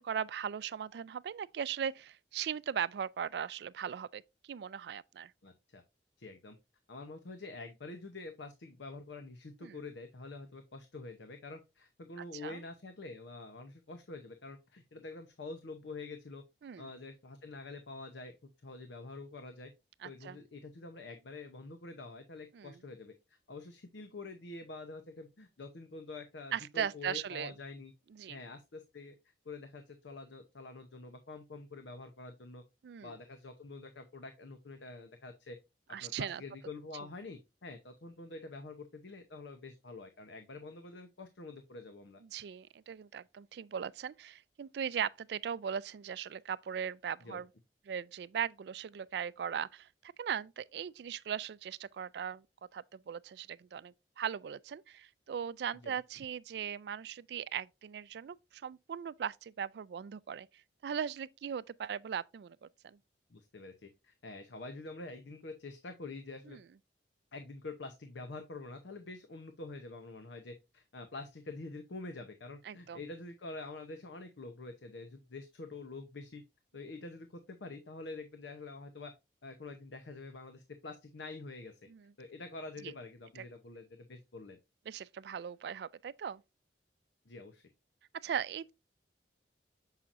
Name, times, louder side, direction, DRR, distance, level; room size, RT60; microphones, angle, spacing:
voice 1, 0.0-5.3 9.6-9.8 12.3-12.6 16.6-16.9 20.0-20.4 22.5-22.8 26.5-27.5 28.1-28.4 32.8-33.1 35.9-36.4 42.2-47.5 47.9-52.4 52.7-60.5 60.8-63.0 66.5-66.6 72.6-73.0 81.9-82.0 82.8-82.9 83.4-83.5 84.9-86.4 88.2-88.7, right 8 dB, 65° right, 0.3 m, -39 dB
voice 2, 5.4-5.8 6.2-6.6 6.9-16.4 16.8-19.7 20.0-27.9 28.3-29.2 29.4-32.6 33.0-35.6 36.0-42.2 47.2-47.4 55.8-56.0 63.3-66.6 67.3-76.4 76.7-79.1 79.4-81.8 82.2-84.6 87.3-87.6, left 3 dB, 80° left, 0.7 m, -47 dB
7.3 x 5.7 x 2.5 m
head